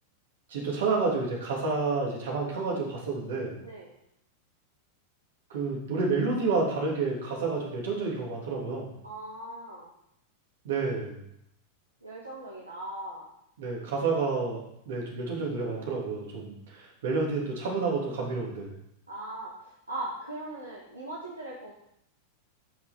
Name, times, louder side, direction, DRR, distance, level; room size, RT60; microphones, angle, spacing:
voice 1, 0.5-3.6 5.5-8.9 10.6-11.2 13.6-14.6 14.9-18.7, right 4 dB, 60° right, -2 dB, 3.1 m, -29 dB
voice 2, 9.0-9.9 12.0-13.3 19.1-21.7, right 1 dB, 85° right, -5 dB, 1.9 m, -39 dB
14.0 x 5.8 x 4.5 m, 0.78 s
figure-of-eight pair, 90°, 0 cm